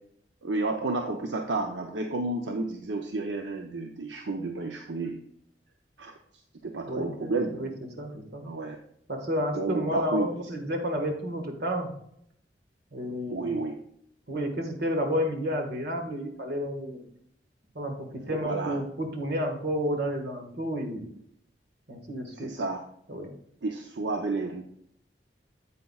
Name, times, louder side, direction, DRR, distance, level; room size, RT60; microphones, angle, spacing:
voice 1, 0.4-5.2 6.0-6.1 6.6-7.6 8.4-8.8 9.5-10.3 13.3-13.8 18.3-18.8 22.4-22.8 23.6-24.6, right 3 dB, 85° right, 3 dB, 0.7 m, -31 dB
voice 2, 6.9-7.3 7.6-7.7 8.0-8.4 9.1-11.9 12.9-13.5 14.3-17.0 17.8-17.9 18.3-21.1 21.9-22.5 23.1-23.3, equal, 65° right, 4 dB, 1.7 m, -31 dB
9.4 x 8.1 x 2.4 m, 0.70 s
head